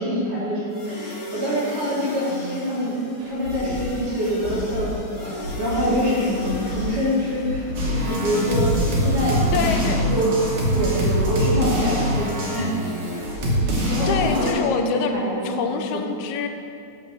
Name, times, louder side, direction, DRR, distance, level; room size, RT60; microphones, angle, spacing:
voice 1, 0.0-3.0 3.3-8.8 9.0-10.3 10.7-12.8 13.9-16.1, equal, 90° right, -8 dB, 3.5 m, -25 dB
sound 1, 0.7-9.8, equal, 55° left, 0.8 m, -36 dB
sound 2, 3.2-10.9 11.2-11.3 11.7-11.8, left 1 dB, 70° right, 2.6 m, -33 dB
sound 3, 7.7-14.5, equal, 55° right, 1.9 m, -23 dB
voice 2, 9.5-10.0 12.5-12.6 14.1-15.1 15.4-16.5, left 6 dB, 80° left, 6 dB, 1.9 m, -25 dB
8.7 x 3.7 x 6.9 m, 2.6 s
omnidirectional pair, 3.4 m